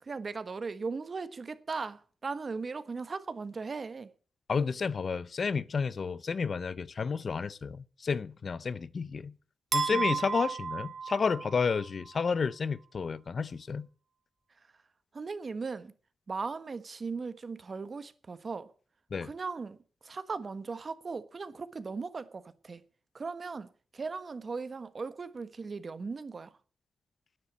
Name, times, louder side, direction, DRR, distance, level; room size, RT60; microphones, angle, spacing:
voice 1, 0.0-4.1 9.9-10.1 15.1-15.9 16.3-18.7 19.2-19.8 20.0-22.8 23.1-26.5, right 4 dB, 40° right, 1.2 m, -38 dB
voice 2, 4.5-9.3 9.7-13.9 19.1-19.3, left 5 dB, 45° left, 0.5 m, -31 dB
sound 1, 9.7-11.8, right 5 dB, 55° right, 2.1 m, -33 dB
10.5 x 9.7 x 8.6 m
wide cardioid pair, 120°, 0 cm